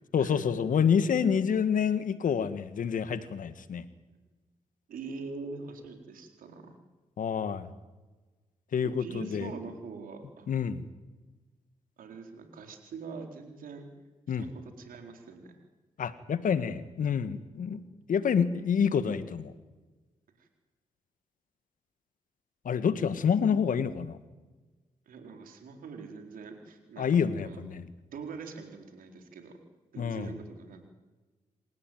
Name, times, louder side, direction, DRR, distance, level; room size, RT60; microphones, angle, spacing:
voice 1, 0.1-3.8 7.2-7.7 8.7-9.5 10.5-10.8 14.3-14.4 16.0-17.8 18.1-19.5 22.6-24.2 27.0-27.8 30.0-30.3, left 7 dB, 70° left, 13 dB, 1.7 m, -27 dB
voice 2, 4.9-6.7 8.8-10.5 12.0-13.9 14.3-15.5 20.4-20.5 25.1-27.6 28.1-29.5 29.9-30.9, right 4 dB, 80° right, 5 dB, 4.2 m, -43 dB
28.0 x 15.5 x 9.4 m, 1.2 s
supercardioid pair, 55°, 14 cm